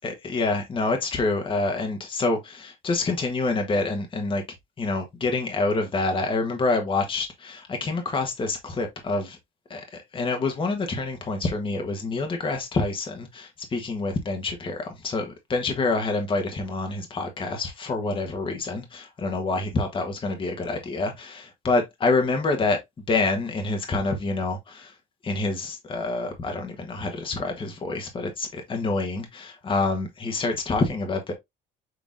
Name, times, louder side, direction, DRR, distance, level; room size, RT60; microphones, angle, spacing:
voice 1, 0.0-4.4 4.8-9.4 9.7-22.8 23.1-24.9 25.2-31.3, left 3 dB, 30° left, 1.2 m, -27 dB
5.8 x 3.6 x 2.5 m
cardioid pair, 110°, 17 cm